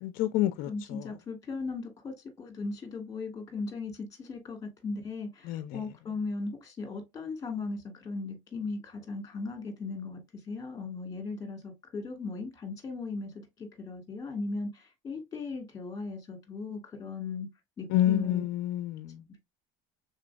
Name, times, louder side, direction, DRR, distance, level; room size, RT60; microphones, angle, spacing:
voice 1, 0.0-1.1 5.5-5.8 17.9-19.2, left 13 dB, 65° left, 0.5 m, -28 dB
voice 2, 0.7-17.5 17.8-18.4, left 3 dB, 20° left, 1.8 m, -37 dB
5.0 x 3.9 x 2.2 m
cardioid pair, 130°, 16 cm